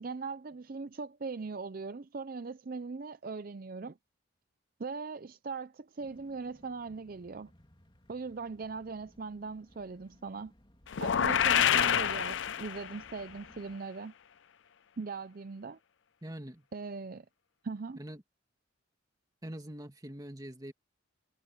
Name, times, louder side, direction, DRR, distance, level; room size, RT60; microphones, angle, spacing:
voice 1, 0.0-4.0 4.8-7.5 8.1-10.5 11.0-14.1 15.0-15.8 16.7-17.3 17.6-18.0, right 4 dB, 45° right, 0.5 m, -40 dB
sound 1, 6.0-13.8, equal, 25° left, 3.0 m, -62 dB
sound 2, 10.9-13.1, left 9 dB, 65° left, 0.5 m, -27 dB
voice 2, 16.2-16.7 18.0-18.2 19.4-20.7, right 1 dB, 20° right, 2.2 m, -43 dB
head